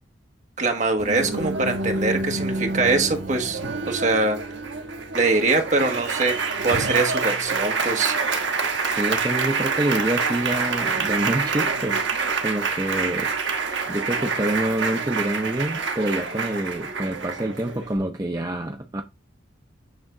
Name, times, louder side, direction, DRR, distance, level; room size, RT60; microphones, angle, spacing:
voice 1, 0.6-3.6 3.9-4.4 5.1-6.4 6.6-8.1, right 3 dB, 40° right, 1.3 m, -23 dB
Applause, 1.0-18.0, right 4 dB, 65° right, 1.2 m, -27 dB
voice 2, 8.8-12.0 12.4-13.3 13.9-19.0, right 1 dB, 20° right, 0.5 m, -27 dB
8.8 x 3.5 x 3.8 m
head